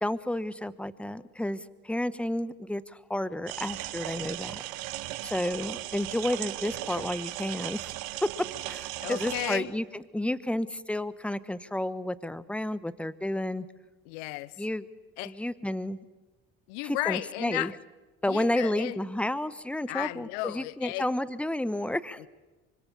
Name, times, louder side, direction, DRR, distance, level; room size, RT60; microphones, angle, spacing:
voice 1, 0.0-4.6 5.2-7.9 8.2-8.3 8.7-13.7 14.6-14.8 15.2-16.0 16.8-17.7 18.2-22.2, left 1 dB, 5° left, 1.2 m, -31 dB
sound 1, 3.5-9.6, right 16 dB, 75° right, 1.3 m, -37 dB
voice 2, 9.0-9.7 14.1-14.5 15.2-15.4 16.7-17.7 18.2-19.0 19.9-21.1 22.2-22.3, left 20 dB, 85° left, 0.7 m, -34 dB
25.0 x 24.5 x 7.1 m
hypercardioid pair, 65°, 37 cm